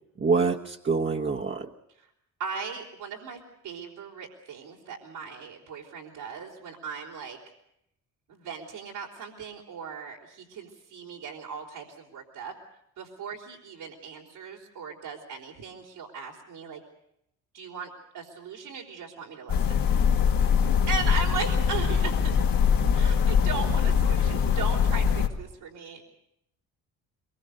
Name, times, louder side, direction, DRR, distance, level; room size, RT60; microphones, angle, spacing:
voice 1, 0.2-1.7, right 4 dB, 30° right, 1 dB, 1.4 m, -26 dB
voice 2, 2.4-7.4 8.3-12.5 13.0-16.8 17.5-19.9 20.9-22.4 22.9-26.1, right 5 dB, 80° right, -4 dB, 3.9 m, -38 dB
sound 1, 19.5-25.3, left 7 dB, 65° left, 2.1 m, -23 dB
23.0 x 22.0 x 6.6 m, 0.78 s
supercardioid pair, 70°, 37 cm